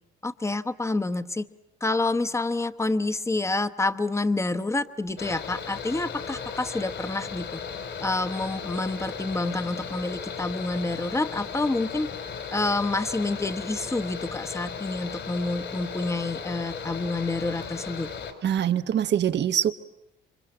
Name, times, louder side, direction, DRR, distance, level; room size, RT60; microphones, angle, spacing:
voice 1, 0.2-1.5 1.8-7.6 8.0-12.1 12.5-18.1, left 2 dB, 15° left, 10 dB, 1.0 m, -28 dB
Mechanical fan, 5.2-18.3, left 6 dB, 70° left, 3.9 m, -36 dB
voice 2, 18.4-19.7, right 9 dB, 60° right, 11 dB, 1.2 m, -23 dB
28.0 x 24.5 x 7.9 m, 0.86 s
cardioid pair, 90°, 20 cm